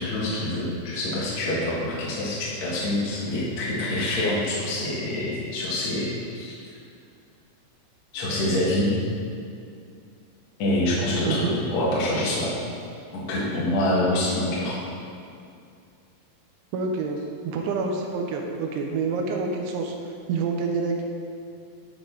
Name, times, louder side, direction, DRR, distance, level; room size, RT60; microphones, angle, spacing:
voice 1, 0.0-6.6 8.1-8.9 10.6-12.6 13.1-14.8, left 1 dB, 55° left, -7 dB, 2.1 m, -26 dB
voice 2, 11.3-11.6 16.7-19.9 20.3-21.0, right 4 dB, 80° right, 2 dB, 3.0 m, -27 dB
12.5 x 4.3 x 3.8 m, 2.4 s
omnidirectional pair, 5.5 m